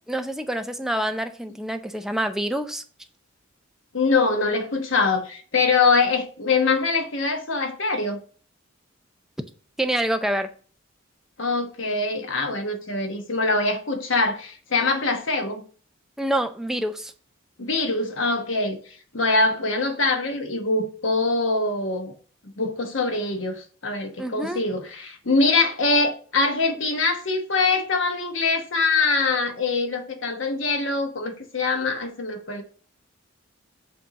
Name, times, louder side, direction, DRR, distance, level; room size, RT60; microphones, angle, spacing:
voice 1, 0.1-2.8 9.8-10.5 16.2-17.1 24.2-24.6, right 1 dB, ahead, 0.5 m, -26 dB
voice 2, 3.9-8.2 11.4-15.6 17.6-18.8 19.1-22.1 22.6-32.6, left 3 dB, 70° left, 1.1 m, -23 dB
7.6 x 2.7 x 5.7 m
head